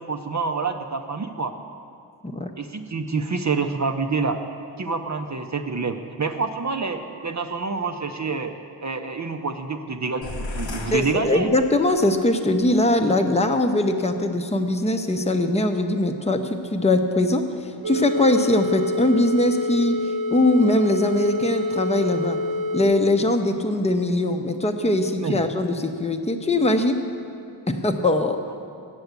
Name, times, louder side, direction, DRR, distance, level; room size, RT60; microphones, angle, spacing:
voice 1, 0.1-1.6 2.6-4.4 4.8-11.5 25.2-25.4, right 4 dB, 40° right, 5 dB, 0.6 m, -27 dB
sound 1, 10.2-12.1, left 2 dB, 85° left, 0.9 m, -34 dB
voice 2, 10.9-22.4 22.7-27.0 27.7-28.4, left 1 dB, 15° left, 5 dB, 0.6 m, -21 dB
sound 2, 17.8-22.8, left 2 dB, 55° right, 1.0 m, -27 dB
8.0 x 6.9 x 8.1 m, 2.5 s
wide cardioid pair, 40°, 44 cm